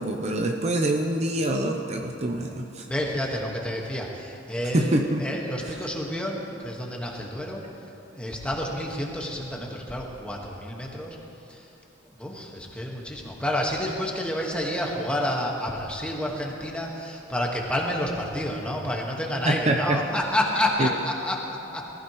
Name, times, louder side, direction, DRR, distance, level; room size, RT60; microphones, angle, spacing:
voice 1, 0.0-2.9 4.7-5.3 19.5-20.0 20.8-20.9, right 1 dB, 35° right, 3 dB, 0.7 m, -25 dB
voice 2, 2.9-7.6 8.1-11.2 11.5-11.7 12.2-21.8, left 1 dB, 5° left, -1 dB, 1.5 m, -29 dB
21.0 x 15.0 x 3.1 m, 2.8 s
head